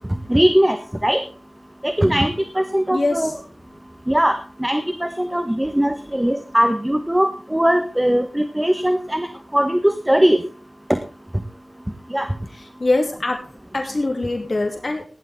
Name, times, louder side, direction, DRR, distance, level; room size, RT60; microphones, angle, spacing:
voice 1, 0.3-1.2 1.8-3.3 4.1-9.3 9.5-10.4 12.1-12.3, equal, 10° right, 8 dB, 1.2 m, -20 dB
voice 2, 2.9-3.3 12.5-13.4 13.7-15.0, left 2 dB, 50° left, 3 dB, 2.9 m, -23 dB
17.5 x 11.0 x 3.7 m, 0.35 s
wide cardioid pair, 65°, 0 cm